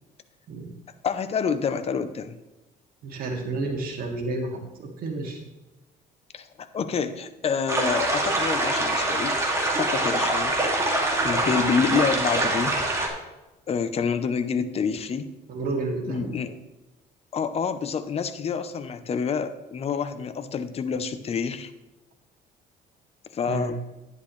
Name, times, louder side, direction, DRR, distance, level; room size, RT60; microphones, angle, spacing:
voice 1, 1.0-2.4 6.3-9.4 9.8-10.6 11.2-12.8 13.7-15.3 16.1-16.6 17.3-21.7 23.3-23.7, left 6 dB, 35° left, 11 dB, 0.8 m, -27 dB
voice 2, 3.0-5.4 15.5-16.4 23.5-23.7, right 3 dB, 60° right, 0 dB, 2.6 m, -30 dB
sound 1, 7.7-13.1, right 2 dB, 15° right, 2.4 m, -24 dB
11.0 x 10.5 x 3.3 m, 1.1 s
cardioid pair, 110°, 17 cm